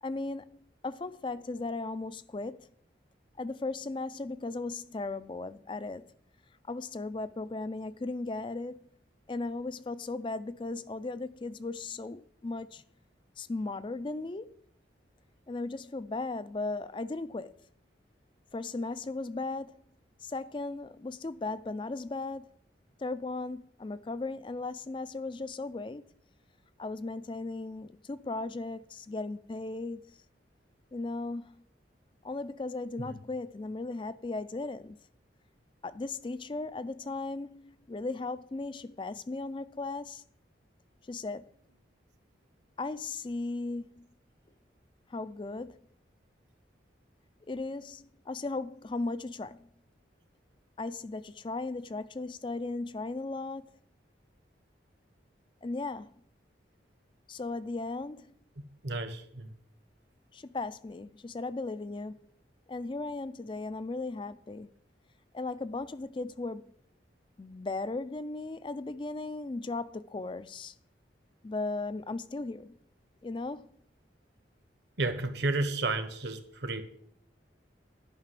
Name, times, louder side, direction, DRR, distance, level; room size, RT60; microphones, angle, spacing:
voice 1, 0.0-2.7 3.4-6.1 6.7-8.9 9.3-12.8 13.4-14.5 15.5-17.6 18.5-19.8 20.2-22.5 23.0-26.1 26.8-30.2 30.9-31.6 32.2-35.0 35.8-40.2 41.1-41.5 42.8-44.0 45.1-45.8 47.5-49.7 50.8-53.7 55.6-56.1 57.3-58.3 60.3-62.3 62.7-64.7 65.3-66.7 67.4-70.7 71.4-72.8 73.2-73.7, left 3 dB, 25° left, 0.4 m, -37 dB
voice 2, 58.8-59.5 75.0-76.8, right 2 dB, 65° right, 1.2 m, -32 dB
11.0 x 5.9 x 7.4 m
head